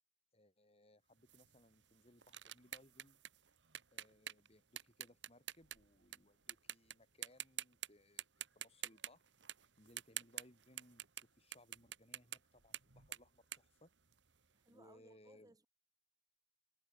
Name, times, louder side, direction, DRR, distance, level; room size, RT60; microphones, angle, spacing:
voice 1, 0.3-3.2 3.9-9.2 9.8-13.9 14.7-15.5, left 1 dB, 35° left, 7.2 m, -66 dB
sound 1, 1.3-6.2 6.5-6.9 7.2-7.9 8.2-11.3 11.5-14.5, right 11 dB, 85° right, 2.0 m, -48 dB
voice 2, 14.5-15.7, right 1 dB, 20° right, 4.6 m, -65 dB
head